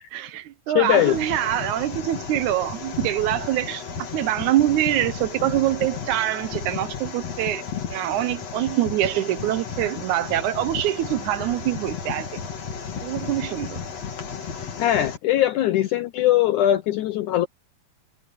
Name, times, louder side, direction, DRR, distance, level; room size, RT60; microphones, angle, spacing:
voice 1, 0.1-3.8 4.1-12.4 13.0-13.8, right 13 dB, 75° right, 1.9 m, -24 dB
voice 2, 0.8-1.2 14.8-17.5, left 12 dB, 70° left, 2.1 m, -20 dB
sound 1, 0.9-15.2, left 6 dB, 50° left, 3.5 m, -34 dB
omnidirectional pair, 3.9 m